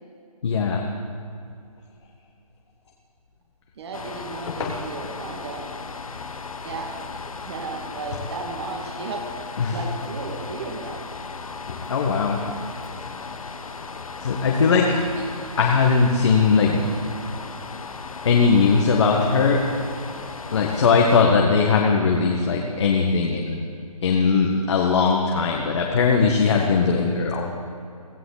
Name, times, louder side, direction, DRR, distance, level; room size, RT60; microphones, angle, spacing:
voice 1, 0.4-0.9 4.5-4.7 9.6-9.8 11.7-12.4 14.2-15.0 15.6-16.9 18.2-19.6 20.5-23.6 24.0-27.5, left 5 dB, 50° left, 0 dB, 1.7 m, -20 dB
voice 2, 3.8-5.7 6.6-9.2 9.7-11.0, right 3 dB, 45° right, 1 dB, 2.3 m, -34 dB
sound 1, 3.9-21.2, left 4 dB, 65° left, 1.1 m, -36 dB
17.0 x 15.0 x 4.1 m, 2.6 s
figure-of-eight pair, 145°, 19 cm